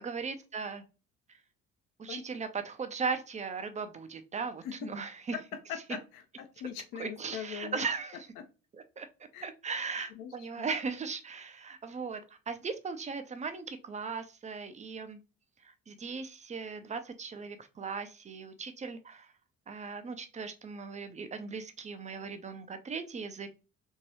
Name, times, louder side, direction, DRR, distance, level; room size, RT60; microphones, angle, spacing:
voice 1, 0.0-0.8 2.0-5.4 7.0-8.3 8.7-9.1 9.4-12.2 12.5-15.2 15.6-19.3 19.7-23.5, right 5 dB, 20° right, 9 dB, 0.5 m, -38 dB
voice 2, 5.3-7.9 8.4-8.5 9.3-9.4 10.1-10.7, left 8 dB, 55° left, 8 dB, 0.7 m, -41 dB
3.0 x 2.7 x 2.9 m, 0.32 s
figure-of-eight pair, 50°, 40 cm